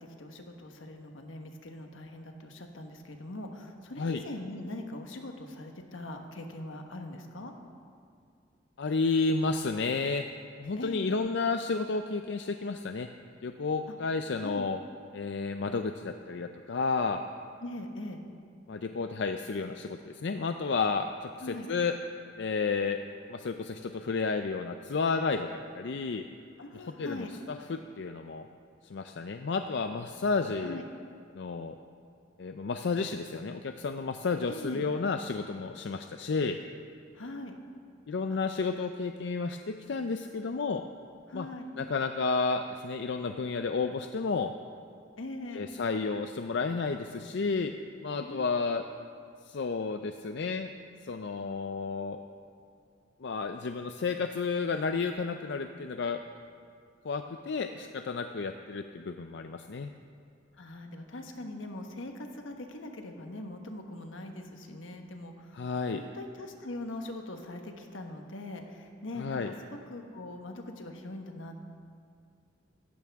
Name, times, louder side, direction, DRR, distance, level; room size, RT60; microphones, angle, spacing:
voice 1, 0.0-7.5 10.8-11.2 14.4-14.7 17.6-18.2 21.4-21.7 26.6-27.3 30.6-30.9 34.5-34.8 37.1-37.6 38.3-38.4 41.3-41.7 45.2-45.8 48.2-48.8 60.6-71.6, left 1 dB, 85° left, 4 dB, 1.3 m, -42 dB
voice 2, 8.8-10.2 10.6-13.1 13.4-14.8 15.1-17.2 18.7-21.1 21.7-21.9 22.4-23.0 23.3-25.5 25.7-26.2 26.7-27.3 27.7-28.5 28.8-30.8 31.3-31.7 32.4-36.6 38.1-40.8 41.3-41.5 41.8-44.5 45.5-47.7 48.0-48.8 49.5-50.7 51.0-52.2 53.2-56.2 57.0-59.9 65.5-66.0 69.2-69.5, left 4 dB, 60° left, 7 dB, 0.5 m, -31 dB
15.5 x 14.0 x 3.6 m, 2.3 s
head